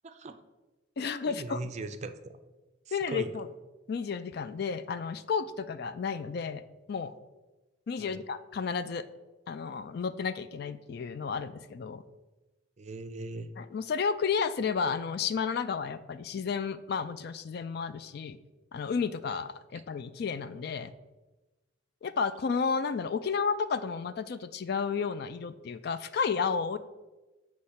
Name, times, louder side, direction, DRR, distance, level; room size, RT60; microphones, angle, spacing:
voice 1, 0.0-0.4 1.3-2.4 2.9-3.3 8.0-8.2 12.8-13.5, right 3 dB, 35° right, 9 dB, 0.4 m, -39 dB
voice 2, 1.0-1.6 2.9-3.5 3.9-6.6 6.9-7.1 7.9-9.0 9.5-12.0 13.6-18.4 18.7-20.9 22.0-26.8, left 5 dB, 55° left, 13 dB, 0.3 m, -32 dB
8.0 x 3.2 x 5.7 m, 1.1 s
head